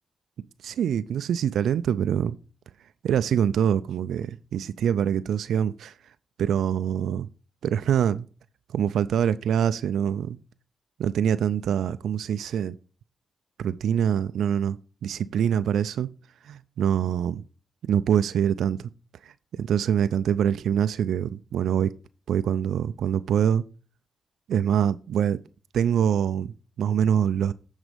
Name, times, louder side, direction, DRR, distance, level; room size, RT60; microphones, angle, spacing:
voice 1, 0.6-2.4 3.0-5.9 6.4-7.3 7.6-8.3 8.7-10.4 11.0-12.8 13.6-16.1 16.4-17.4 17.9-18.9 19.6-21.9 22.3-23.6 24.5-25.4 25.7-27.5, right 9 dB, 80° right, 0.3 m, -24 dB
9.8 x 4.1 x 5.1 m
supercardioid pair, 50°, 0 cm